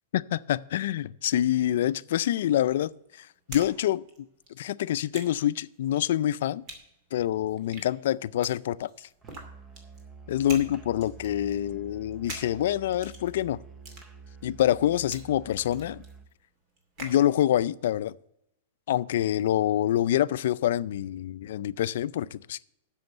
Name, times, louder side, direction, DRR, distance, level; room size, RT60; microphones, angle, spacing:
voice 1, 0.1-4.0 4.6-6.6 7.1-8.9 10.3-13.6 14.4-16.0 17.0-18.1 18.9-22.6, left 12 dB, 70° left, 0.4 m, -26 dB
sound 1, 2.3-3.7 4.0-17.2, right 2 dB, 35° right, 2.4 m, -46 dB
Musical instrument, 9.2-16.3, right 4 dB, 20° right, 0.8 m, -48 dB
7.8 x 6.4 x 8.0 m
supercardioid pair, 150°, 0 cm